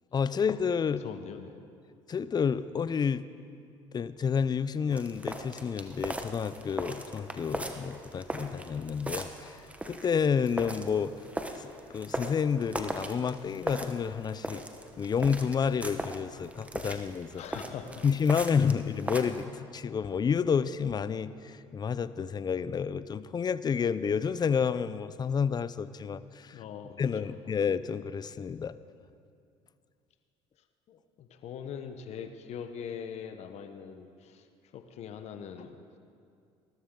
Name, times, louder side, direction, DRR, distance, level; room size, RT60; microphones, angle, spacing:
voice 1, 0.1-1.0 2.1-3.2 3.9-9.6 9.9-11.1 11.6-14.6 15.0-17.4 18.0-26.6 27.0-28.8, left 6 dB, 35° left, 15 dB, 0.5 m, -30 dB
voice 2, 1.0-1.5 17.4-18.0 26.5-27.4 30.9-34.5 34.7-35.8, left 7 dB, 60° left, 7 dB, 1.0 m, -42 dB
sound 1, 4.9-19.5, right 1 dB, 10° right, 1.2 m, -39 dB
19.0 x 12.5 x 3.8 m, 2.4 s
supercardioid pair, 75°, 13 cm